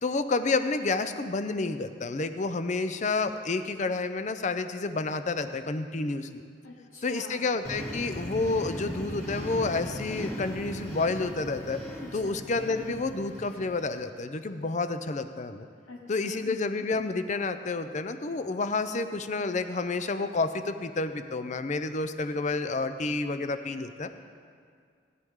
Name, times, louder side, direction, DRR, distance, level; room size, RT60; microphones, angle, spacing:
voice 1, 0.0-6.4 7.0-11.8 12.1-15.7 16.1-24.1, left 3 dB, 35° left, 10 dB, 0.5 m, -30 dB
voice 2, 6.6-7.4 12.0-12.4 15.9-16.5, left 3 dB, 85° left, -2 dB, 1.1 m, -45 dB
sound 1, 7.6-14.1, equal, 15° left, 2.4 m, -38 dB
17.5 x 9.3 x 3.7 m, 2.2 s
head